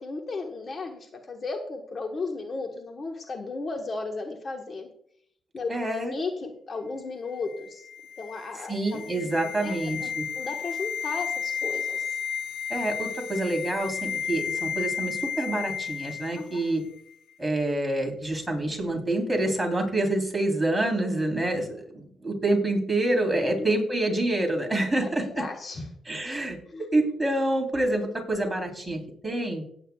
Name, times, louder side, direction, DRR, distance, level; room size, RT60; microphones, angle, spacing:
voice 1, 0.0-4.9 5.5-5.7 6.0-7.8 8.2-10.1 10.3-12.0 16.3-16.5 25.0-25.9 26.7-26.8, left 3 dB, 40° left, 3 dB, 1.3 m, -35 dB
voice 2, 5.7-6.1 8.7-10.2 12.7-16.8 17.4-25.4 26.1-29.6, right 1 dB, 10° right, 1 dB, 3.5 m, -27 dB
sound 1, 7.5-16.7 17.0-17.1, left 7 dB, 70° left, 0.5 m, -33 dB
17.5 x 8.9 x 2.3 m, 0.65 s
cardioid pair, 90°, 0 cm